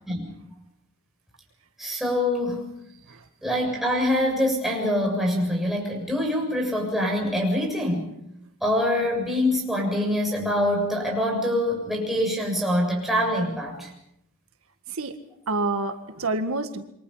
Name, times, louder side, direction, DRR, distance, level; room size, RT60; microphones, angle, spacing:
voice 1, 1.8-2.7 3.4-8.1 8.6-13.9, left 1 dB, ahead, -1 dB, 7.4 m, -24 dB
voice 2, 15.5-16.8, right 2 dB, 85° right, 7 dB, 1.8 m, -28 dB
28.5 x 24.0 x 5.8 m, 0.78 s
head